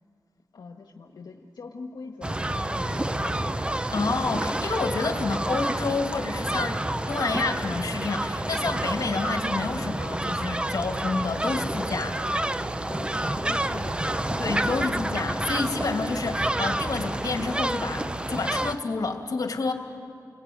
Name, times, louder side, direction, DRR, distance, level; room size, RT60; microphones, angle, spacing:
voice 1, 0.5-3.4 12.9-14.4, left 4 dB, 85° left, 3 dB, 1.4 m, -43 dB
sound 1, 2.2-18.8, right 1 dB, 15° right, 0.7 m, -29 dB
voice 2, 3.9-12.2 14.4-19.7, left 4 dB, 60° left, 4 dB, 2.6 m, -29 dB
30.0 x 21.0 x 9.5 m, 2.3 s
wide cardioid pair, 105°, 7 cm